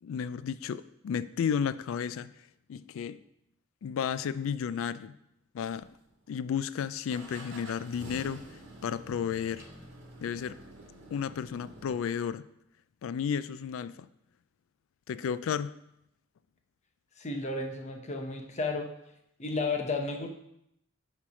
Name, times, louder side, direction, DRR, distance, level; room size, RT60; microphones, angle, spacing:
voice 1, 0.0-2.3 2.7-3.2 3.8-5.2 5.5-6.0 6.3-8.4 8.8-9.6 10.2-10.6 11.1-12.5 13.0-14.1 15.1-15.8, left 7 dB, 70° left, 15 dB, 0.3 m, -33 dB
sound 1, 5.7-6.4 7.1-12.0, right 1 dB, 60° right, 1.8 m, -48 dB
voice 2, 17.2-18.9 19.4-20.3, left 3 dB, 35° left, 4 dB, 0.8 m, -32 dB
8.6 x 3.3 x 5.1 m, 0.78 s
head